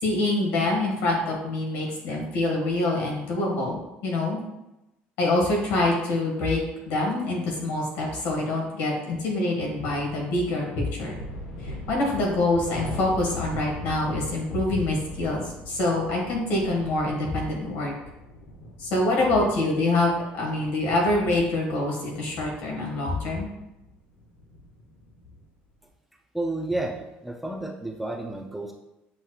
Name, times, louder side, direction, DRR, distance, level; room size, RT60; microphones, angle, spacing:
voice 1, 0.0-4.4 5.2-6.6 6.9-11.2 11.6-17.9 18.8-23.5, left 2 dB, 70° left, -1 dB, 1.5 m, -25 dB
sound 1, 9.7-25.5, left 1 dB, 90° left, 1.1 m, -41 dB
voice 2, 26.3-28.7, right 2 dB, ahead, -1 dB, 0.4 m, -31 dB
7.1 x 3.1 x 2.3 m, 0.93 s
cardioid pair, 155°, 4 cm